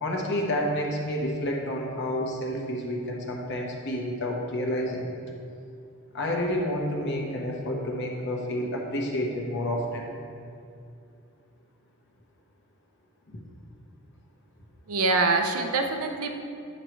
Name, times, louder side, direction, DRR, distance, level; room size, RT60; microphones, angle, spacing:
voice 1, 0.0-5.1 6.1-10.1, left 1 dB, 55° left, -1 dB, 1.1 m, -29 dB
voice 2, 14.9-16.3, right 3 dB, 85° right, 4 dB, 0.7 m, -24 dB
9.0 x 6.5 x 3.2 m, 2.5 s
head